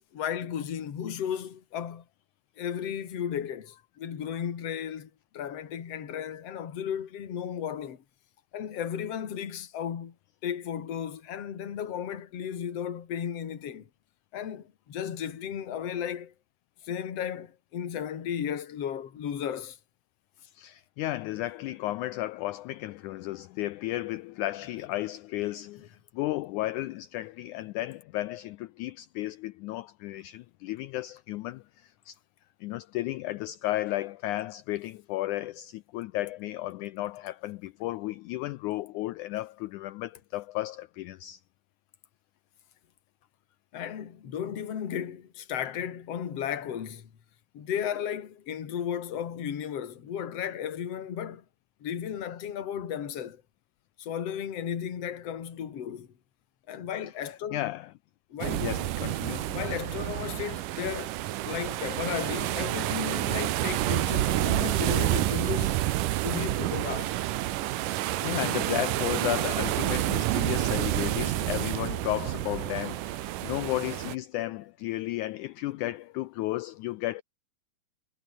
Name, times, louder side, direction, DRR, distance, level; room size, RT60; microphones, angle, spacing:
voice 1, 0.1-2.0 2.6-8.0 8.5-10.1 10.4-13.9 14.3-16.3 16.8-19.8 43.7-47.1 47.5-51.4 51.8-53.4 54.0-56.1 56.7-57.6 58.3-58.7 59.5-61.2 61.5-65.8 66.2-67.2, left 9 dB, 50° left, 3.1 m, -34 dB
voice 2, 20.6-32.2 32.6-41.4 57.5-57.9 58.6-59.6 67.9-77.2, left 16 dB, 85° left, 1.8 m, -34 dB
sound 1, 58.4-74.2, right 15 dB, 75° right, 2.4 m, -29 dB
omnidirectional pair, 4.0 m